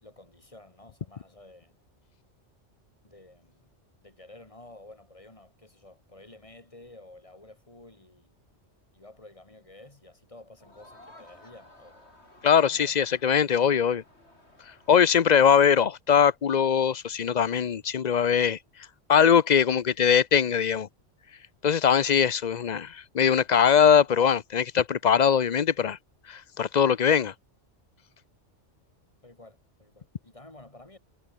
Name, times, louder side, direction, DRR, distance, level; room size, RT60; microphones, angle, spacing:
voice 1, 0.0-1.7 3.0-3.7 4.0-8.3 8.9-12.1 12.5-13.1 29.2-31.0, left 2 dB, 30° left, 3.3 m, -51 dB
Crowd, 10.6-15.9, left 1 dB, 65° left, 7.4 m, -55 dB
voice 2, 12.4-14.0 14.9-18.6 19.1-20.9 21.6-26.0 26.3-27.3, left 7 dB, 45° left, 0.7 m, -21 dB
omnidirectional pair, 1.2 m